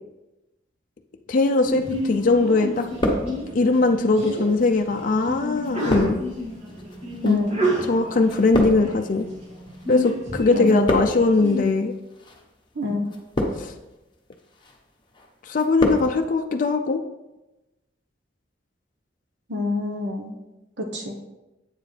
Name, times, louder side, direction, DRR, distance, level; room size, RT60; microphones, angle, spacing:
voice 1, 1.3-2.9 3.5-6.2 7.2-7.4 7.9-9.3 9.9-11.9 13.6-13.7 15.5-17.0, left 3 dB, 45° left, 5 dB, 0.4 m, -20 dB
Sneeze, 1.6-11.6, equal, 35° right, 2.3 m, -31 dB
sound 1, 1.9-2.5 2.7-3.8 4.5-10.1 10.4-11.4 12.1-12.4 13.1-13.9 14.3-14.8 15.1-16.1 16.4-16.5, left 1 dB, 25° left, 1.0 m, -28 dB
voice 2, 7.2-7.6 10.5-10.9 12.7-13.2 19.5-20.3 20.8-21.1, left 2 dB, 70° right, 1 dB, 1.0 m, -27 dB
8.2 x 7.3 x 3.3 m, 1.0 s
head